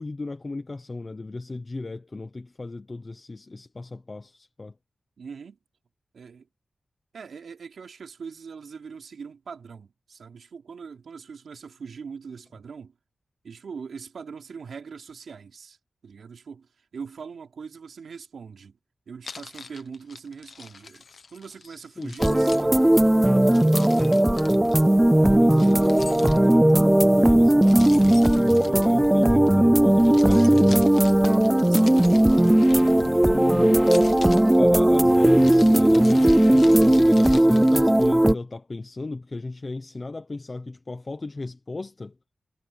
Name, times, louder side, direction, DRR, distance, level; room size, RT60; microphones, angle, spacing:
voice 1, 0.0-4.7 21.6-22.1 25.4-30.9 33.0-33.9 34.6-42.1, left 3 dB, 25° left, 0.9 m, -35 dB
voice 2, 5.2-5.6 6.1-6.5 7.1-12.9 13.4-15.8 16.0-18.8 19.1-21.0 21.3-24.1 25.1-26.1 31.6-32.1 32.3-32.7, right 5 dB, 65° right, 3.8 m, -42 dB
Keys jangling, 19.2-21.7 22.0-24.8 25.6-26.8 27.6-29.5 29.9-33.3 33.8-38.3, left 4 dB, 50° left, 1.2 m, -43 dB
sound 1, 22.2-38.3, right 1 dB, 5° right, 0.3 m, -17 dB
sound 2, 32.0-37.4, left 6 dB, 90° left, 4.1 m, -41 dB
wide cardioid pair, 175°, 0 cm